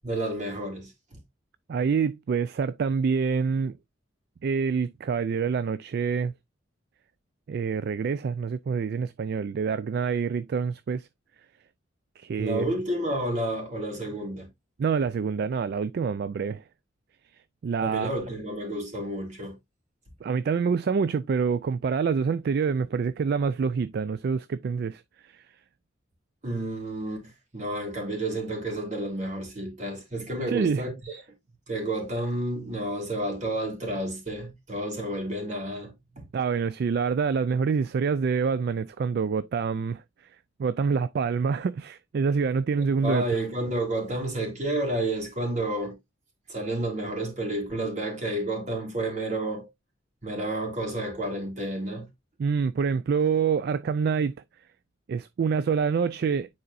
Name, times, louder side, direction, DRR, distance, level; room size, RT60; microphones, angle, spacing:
voice 1, 0.0-0.9 12.4-14.5 17.8-19.5 26.4-31.2 31.7-36.3 43.0-46.0 46.5-49.7 50.2-52.1, right 1 dB, 35° right, 2.8 m, -30 dB
voice 2, 1.7-3.8 4.4-6.3 7.5-11.1 12.2-12.6 14.8-16.6 17.6-18.1 20.2-25.4 30.5-30.9 36.3-40.0 40.6-43.2 52.4-54.4 55.1-56.5, right 5 dB, 55° right, 0.3 m, -26 dB
9.3 x 4.2 x 2.5 m
head